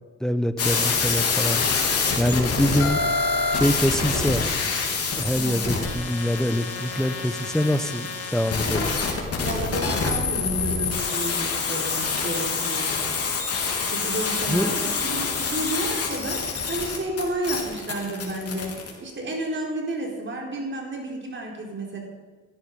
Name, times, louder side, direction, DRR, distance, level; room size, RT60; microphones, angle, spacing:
voice 1, 0.2-1.6 2.2-3.0 3.5-4.5 5.2-9.0 14.5-15.1, equal, ahead, 11 dB, 1.0 m, -24 dB
sound 1, 0.6-18.9, left 4 dB, 50° left, 3.6 m, -26 dB
voice 2, 5.3-5.9 9.4-13.0 13.9-22.0, right 1 dB, 40° right, 0 dB, 4.2 m, -31 dB
17.0 x 12.5 x 5.4 m, 1.4 s
cardioid pair, 90°, 30 cm